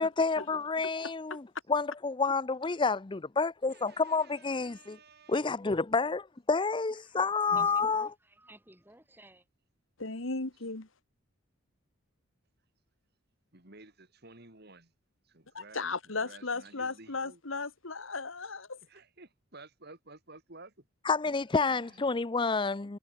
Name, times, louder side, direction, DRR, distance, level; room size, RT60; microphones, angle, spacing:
voice 1, 0.0-5.0 5.3-6.2 6.5-8.1 21.0-23.0, left 4 dB, 25° left, 0.5 m, -29 dB
voice 2, 3.7-5.5 13.5-14.9 15.3-17.4 18.8-20.9 21.3-21.4 21.6-22.1, right 3 dB, 50° right, 4.2 m, -54 dB
voice 3, 7.5-9.5, right 1 dB, 10° right, 6.6 m, -56 dB
voice 4, 10.0-10.9 15.5-18.8, left 3 dB, 70° left, 2.0 m, -36 dB
head